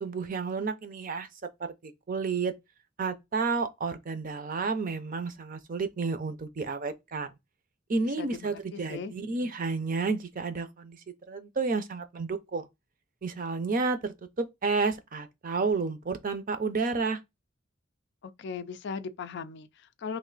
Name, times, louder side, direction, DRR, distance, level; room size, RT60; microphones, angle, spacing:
voice 1, 0.0-1.3 1.8-2.5 3.0-7.3 7.9-11.0 11.3-12.7 13.2-17.2, right 4 dB, 45° right, 0.5 m, -31 dB
voice 2, 8.0-9.1 18.2-20.2, left 5 dB, 60° left, 0.4 m, -38 dB
3.2 x 2.6 x 3.8 m
head